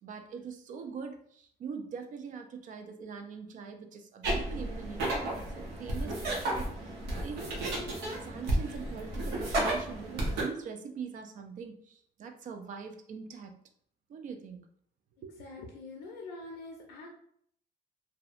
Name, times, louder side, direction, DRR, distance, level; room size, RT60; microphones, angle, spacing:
voice 1, 0.0-13.6 14.1-14.6 15.2-15.4, right 6 dB, 50° right, 6 dB, 0.4 m, -43 dB
sound 1, 4.2-10.4, right 1 dB, 85° right, 0.7 m, -33 dB
voice 2, 15.4-17.1, left 3 dB, 90° left, -1 dB, 0.5 m, -44 dB
2.6 x 2.1 x 2.4 m, 0.64 s
cardioid pair, 110°, 17 cm